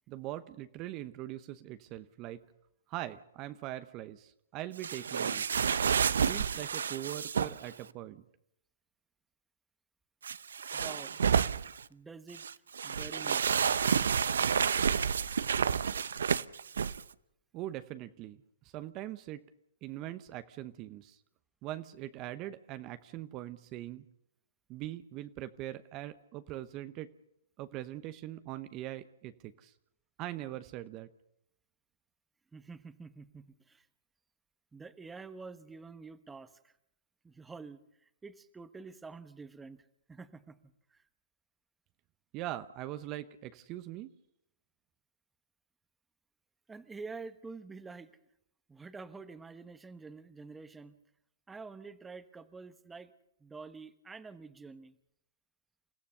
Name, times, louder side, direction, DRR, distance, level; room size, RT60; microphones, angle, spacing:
voice 1, 0.1-2.4 2.9-5.7 6.3-8.2 17.5-19.5 19.8-21.2 21.6-24.0 24.7-27.1 27.6-29.7 30.2-31.1 42.3-44.1, right 14 dB, 35° right, 11 dB, 0.9 m, -42 dB
sound 1, 4.8-7.7 10.2-11.8 12.3-17.0, right 7 dB, 75° right, 0.7 m, -30 dB
voice 2, 10.7-11.2 11.9-12.4 12.8-13.6 32.5-33.9 34.7-36.7 37.2-41.0 46.7-48.2 48.7-51.0 51.5-53.1 53.4-55.0, right 4 dB, 10° right, 12 dB, 1.2 m, -48 dB
28.5 x 15.5 x 6.8 m, 0.78 s
hypercardioid pair, 130°, 0 cm